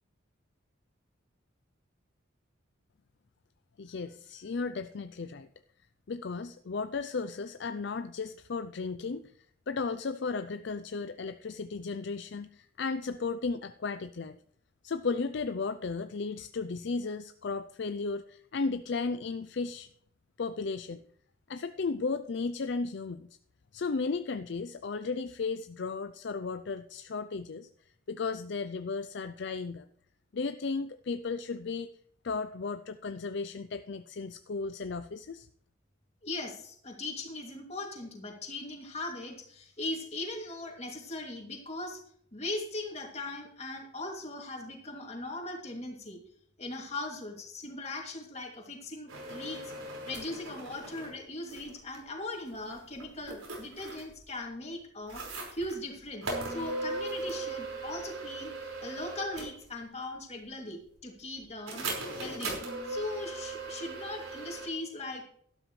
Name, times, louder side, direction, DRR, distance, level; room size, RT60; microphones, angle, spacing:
voice 1, 3.8-5.5 6.1-9.3 9.7-14.4 14.8-19.9 20.4-21.0 21.5-23.3 23.7-29.9 30.3-31.9 32.2-35.5, left 4 dB, 55° left, 11 dB, 0.4 m, -35 dB
voice 2, 36.2-42.0 42.3-46.2 46.6-49.7 50.1-58.5 58.8-61.9 62.2-62.5 62.9-65.2, left 2 dB, 30° left, 1 dB, 2.6 m, -39 dB
sound 1, 49.1-51.1 51.5-52.0 52.5-54.2 55.1-55.8 56.2-59.6 61.7-64.7, right 2 dB, 90° right, 5.1 m, -38 dB
12.5 x 12.5 x 3.2 m, 0.63 s
head